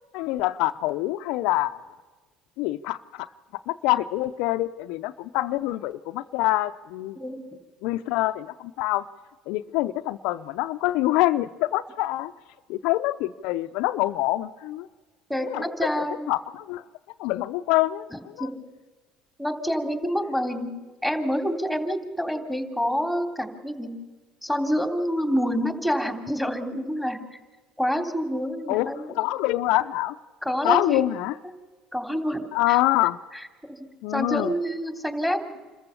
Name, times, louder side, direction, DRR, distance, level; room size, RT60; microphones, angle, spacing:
voice 1, 0.1-1.8 2.6-3.3 3.7-7.2 7.8-9.0 9.5-12.3 12.7-14.9 15.5-15.6 16.3-16.8 17.2-18.5 28.7-30.2 30.6-31.3 32.5-33.2 34.0-34.5, left 16 dB, 75° left, 10 dB, 0.5 m, -25 dB
voice 2, 15.3-16.3 18.1-18.5 19.4-20.7 21.0-23.9 24.4-27.2 27.8-29.2 30.4-31.0 31.9-32.8 33.3-35.6, equal, 5° right, 6 dB, 3.1 m, -27 dB
27.0 x 14.5 x 7.0 m, 1.3 s
supercardioid pair, 80°, 0 cm